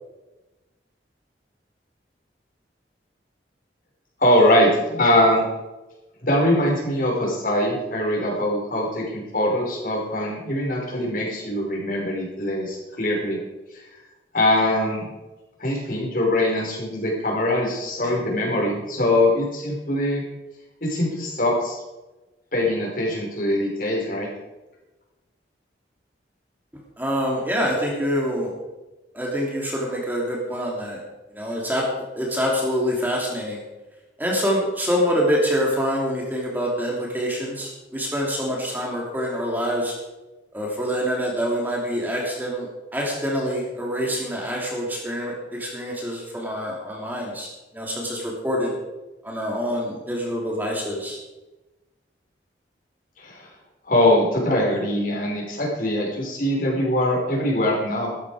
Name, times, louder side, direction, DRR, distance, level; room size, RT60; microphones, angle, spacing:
voice 1, 4.2-5.5 6.2-13.4 13.7-13.8 14.3-15.1 15.6-20.2 20.8-21.8 22.5-24.3 53.2-53.5 53.9-58.1, left 1 dB, 50° left, -2 dB, 5.2 m, -22 dB
voice 2, 27.0-28.5 29.1-31.0 31.3-31.8 32.2-33.6 34.2-39.9 40.5-42.7 42.9-47.5 47.7-48.7 49.2-51.2, equal, 10° right, -2 dB, 3.1 m, -25 dB
16.0 x 13.5 x 5.0 m, 1.1 s
head